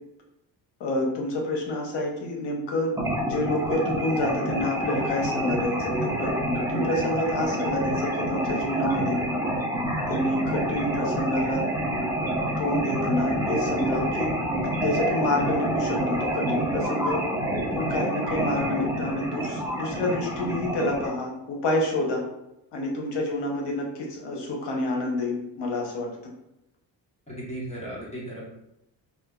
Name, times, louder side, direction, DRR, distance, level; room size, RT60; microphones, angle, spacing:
voice 1, 0.8-9.2 10.1-11.7 12.6-14.3 14.8-17.2 17.7-22.3 22.7-26.1, left 1 dB, 70° left, 0 dB, 0.9 m, -28 dB
sound 1, 3.0-21.1, right 1 dB, 5° right, 0.4 m, -28 dB
voice 2, 27.3-28.5, right 1 dB, 15° left, -7 dB, 1.0 m, -36 dB
2.6 x 2.2 x 2.2 m, 0.84 s
cardioid pair, 95°, 44 cm